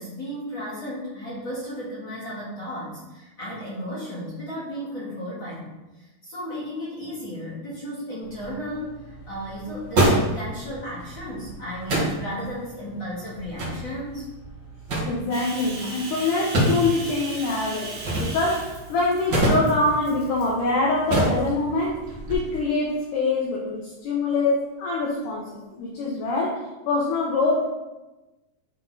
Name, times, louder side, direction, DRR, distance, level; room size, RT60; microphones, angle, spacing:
voice 1, 0.0-14.3, equal, 35° left, -9 dB, 2.5 m, -34 dB
sound 1, 8.2-22.3, right 1 dB, 40° right, 2.0 m, -28 dB
voice 2, 15.1-22.0 22.3-27.6, left 3 dB, 70° left, -4 dB, 2.4 m, -24 dB
Bathtub (filling or washing), 15.3-20.7 21.1-21.5 22.1-22.9, right 2 dB, 75° right, 3.4 m, -39 dB
10.5 x 3.8 x 3.9 m, 1.1 s
omnidirectional pair, 4.2 m